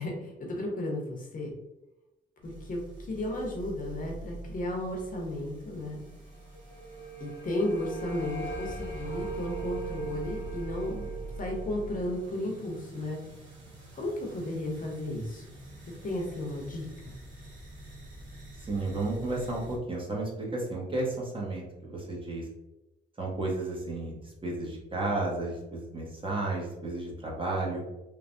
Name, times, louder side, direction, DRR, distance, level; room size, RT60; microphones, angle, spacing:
voice 1, 0.0-1.5 2.4-2.8 3.1-6.0 7.2-11.1 11.4-13.2 13.9-15.6 16.0-17.1, left 1 dB, 45° left, 0 dB, 0.8 m, -34 dB
sound 1, 2.4-19.8, right 2 dB, 70° right, 1.4 m, -45 dB
sound 2, 6.2-13.2, right 3 dB, 75° left, 0.9 m, -41 dB
sound 3, 9.0-15.4, right 3 dB, 55° right, 0.8 m, -50 dB
voice 2, 18.7-22.5 23.2-27.8, right 2 dB, 25° right, -3 dB, 0.9 m, -33 dB
3.3 x 2.2 x 2.6 m, 0.97 s
cardioid pair, 90°, 20 cm